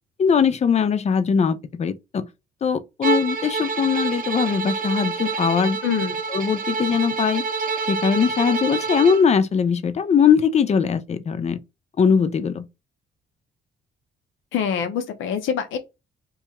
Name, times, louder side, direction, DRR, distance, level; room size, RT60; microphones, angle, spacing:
voice 1, 0.2-2.3 2.6-5.8 6.3-7.4 7.9-11.6 12.0-12.7, left 6 dB, 35° left, 0.5 m, -20 dB
Bowed string instrument, 3.0-9.3, right 4 dB, 45° right, 0.7 m, -27 dB
voice 2, 5.8-6.2 14.5-15.8, left 7 dB, 80° left, 0.7 m, -25 dB
2.7 x 2.3 x 4.1 m
cardioid pair, 90°, 20 cm